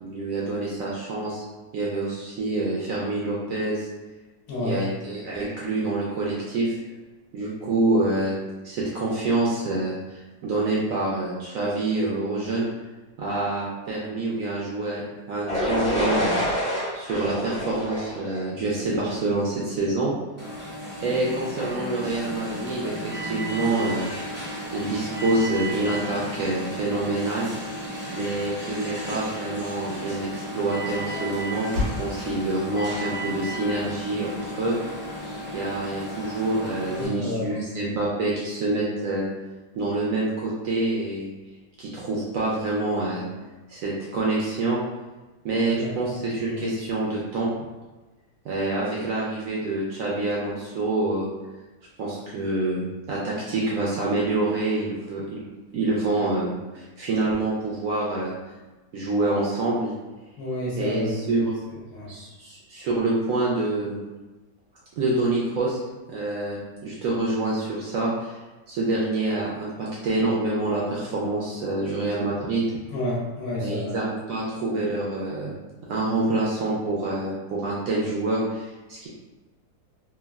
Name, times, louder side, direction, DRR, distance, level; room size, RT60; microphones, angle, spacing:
voice 1, 0.0-1.4 1.7-3.9 4.6-6.8 7.3-8.3 8.6-12.7 13.2-16.4 16.9-20.1 21.0-24.1 24.7-27.5 28.1-34.8 35.5-39.3 39.7-41.3 41.8-43.3 43.7-44.8 45.4-47.5 48.4-51.3 52.0-55.4 55.7-58.3 58.9-59.9 60.8-61.6 62.1-64.0 65.0-65.8 66.1-68.4 68.7-72.6 73.6-75.5 75.9-79.1, right 2 dB, 70° right, -5 dB, 0.8 m, -26 dB
voice 2, 4.5-4.8 36.9-37.5 45.7-45.9 46.5-46.6 60.4-61.4 61.9-62.1 72.9-73.9, left 1 dB, 65° left, -5 dB, 0.9 m, -29 dB
sound 1, 15.5-19.4, equal, 40° left, 1.0 m, -27 dB
Alarm, 20.4-37.1, equal, 15° right, 0.5 m, -34 dB
Motor vehicle (road), 31.7-36.3, left 2 dB, 90° right, 1.3 m, -39 dB
3.2 x 2.2 x 2.3 m, 1.2 s
omnidirectional pair, 1.8 m